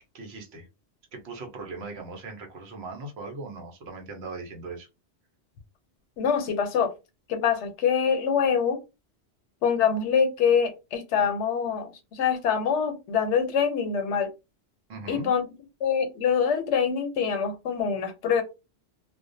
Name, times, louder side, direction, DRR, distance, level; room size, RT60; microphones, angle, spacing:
voice 1, 0.1-0.7 1.1-4.9 14.9-15.3, right 3 dB, 70° right, 0.9 m, -39 dB
voice 2, 6.2-6.9 7.3-8.8 9.6-14.3 15.1-15.4 15.8-18.4, left 7 dB, 90° left, 0.9 m, -25 dB
2.3 x 2.1 x 2.5 m
omnidirectional pair, 1.1 m